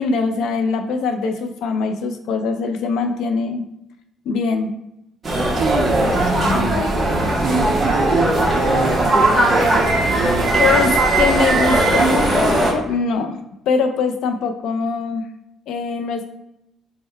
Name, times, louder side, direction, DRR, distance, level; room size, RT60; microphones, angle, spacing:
voice 1, 0.0-3.6 4.3-4.7 10.6-13.4 13.7-15.2 15.7-16.3, left 4 dB, 75° left, 6 dB, 0.4 m, -22 dB
sound 1, 5.2-12.7, right 1 dB, 30° right, 0.8 m, -18 dB
voice 2, 5.6-10.9, right 4 dB, 50° right, 4 dB, 0.4 m, -26 dB
3.5 x 2.1 x 4.3 m, 0.85 s
cardioid pair, 120°, 0 cm